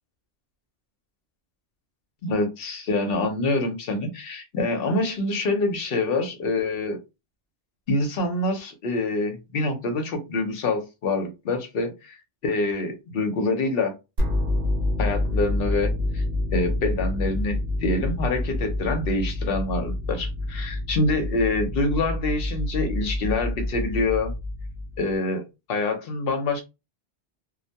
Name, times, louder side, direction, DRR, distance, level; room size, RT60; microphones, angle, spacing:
voice 1, 2.2-7.0 7.9-12.2 12.4-13.9 15.0-16.2 16.5-24.3 25.0-25.4 25.7-26.6, left 2 dB, 60° left, 5 dB, 0.8 m, -26 dB
sound 1, 14.2-25.1, left 2 dB, 55° right, 0.8 m, -27 dB
2.2 x 2.1 x 2.7 m, 0.26 s
omnidirectional pair, 1.2 m